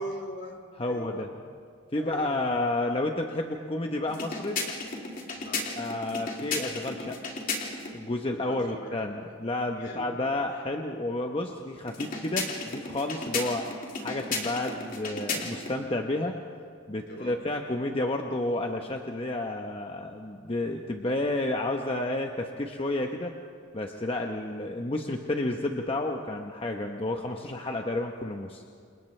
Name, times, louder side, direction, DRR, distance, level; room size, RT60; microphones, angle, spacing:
voice 1, 0.0-1.3 1.9-2.5 5.3-5.7 8.4-9.3 9.8-10.1 13.3-13.5 17.1-17.4, equal, 65° left, 1 dB, 3.9 m, -41 dB
voice 2, 0.8-1.3 1.9-4.6 5.8-7.2 7.9-13.6 14.0-16.3 16.9-23.3 23.7-28.6, left 2 dB, 30° left, 3 dB, 1.0 m, -31 dB
sound 1, 4.1-8.0 11.9-15.8, left 3 dB, 45° left, 3.0 m, -34 dB
29.0 x 28.0 x 3.3 m, 2.3 s
head